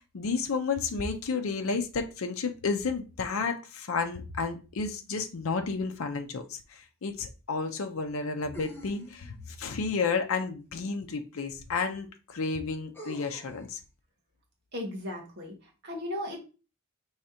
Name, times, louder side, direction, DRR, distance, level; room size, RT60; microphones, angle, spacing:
voice 1, 0.1-13.8, left 4 dB, 70° left, 0.5 m, -31 dB
sound 1, 6.4-6.5 8.5-9.5 11.3-11.4 12.9-13.7, right 2 dB, 10° left, 0.9 m, -45 dB
voice 2, 14.7-16.4, left 1 dB, 50° right, 1.2 m, -36 dB
4.8 x 3.2 x 2.8 m
head